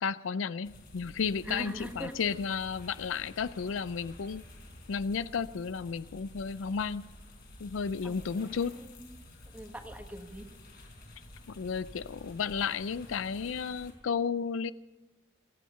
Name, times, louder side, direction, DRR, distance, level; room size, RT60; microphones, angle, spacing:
voice 1, 0.0-4.4 4.9-7.0 7.6-8.8 11.5-14.7, left 6 dB, 75° left, 16 dB, 0.4 m, -33 dB
sound 1, 0.6-13.9, left 1 dB, 50° left, 4.6 m, -51 dB
voice 2, 1.4-2.1 8.0-8.2 8.8-9.2 9.5-10.5, equal, 10° right, 5 dB, 1.3 m, -41 dB
28.0 x 9.3 x 5.6 m, 1.1 s
head